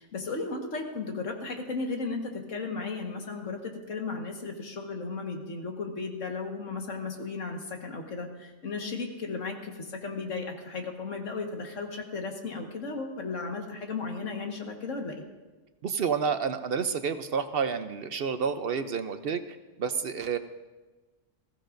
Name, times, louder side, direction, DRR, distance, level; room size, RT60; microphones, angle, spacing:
voice 1, 0.0-15.2, left 4 dB, 90° left, 2 dB, 1.9 m, -35 dB
voice 2, 15.8-20.4, right 6 dB, 60° right, 10 dB, 0.8 m, -30 dB
20.0 x 15.0 x 2.6 m, 1.2 s
omnidirectional pair, 1.3 m